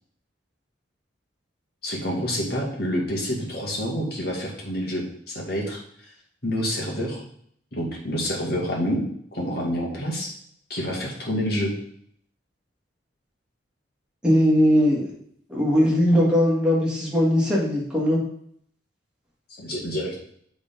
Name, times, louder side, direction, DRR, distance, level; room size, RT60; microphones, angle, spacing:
voice 1, 1.8-5.8 6.4-7.2 7.7-9.0 9.3-10.3 10.7-11.8 19.6-20.2, equal, 55° left, -2 dB, 2.1 m, -27 dB
voice 2, 14.2-15.1 15.5-18.2, equal, 5° right, -5 dB, 1.9 m, -19 dB
6.8 x 4.1 x 5.3 m, 0.66 s
head